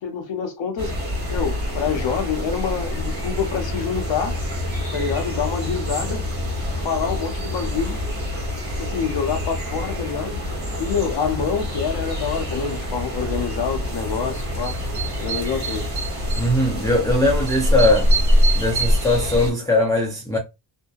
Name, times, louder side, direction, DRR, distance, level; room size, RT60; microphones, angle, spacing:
voice 1, 0.0-0.9 1.3-4.4 4.9-6.3 6.8-8.0 8.8-10.4 10.8-14.8 15.2-15.8, left 6 dB, 70° left, 0.7 m, -26 dB
sound 1, 0.8-19.5, equal, 20° right, 1.3 m, -25 dB
voice 2, 16.4-18.1 18.5-20.4, left 1 dB, 10° left, 0.4 m, -20 dB
2.7 x 2.1 x 2.3 m
wide cardioid pair, 140°, 46 cm